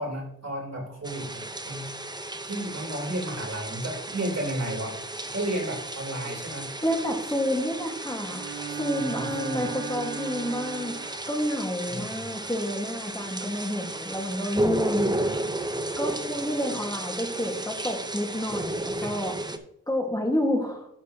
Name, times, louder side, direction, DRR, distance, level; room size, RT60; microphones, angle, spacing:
voice 1, 0.0-1.9 2.4-5.0 5.3-6.7 8.9-9.6 11.9-12.3 15.1-15.4, right 1 dB, 55° right, -2 dB, 3.6 m, -33 dB
sound 1, 1.0-19.6, right 1 dB, 15° right, 0.7 m, -33 dB
voice 2, 6.8-15.2 16.0-19.4 19.9-20.9, equal, 10° left, 1 dB, 1.6 m, -29 dB
Bowed string instrument, 8.2-11.4, right 7 dB, 35° right, 1.5 m, -36 dB
11.5 x 6.8 x 2.8 m, 0.78 s
wide cardioid pair, 105°, 32 cm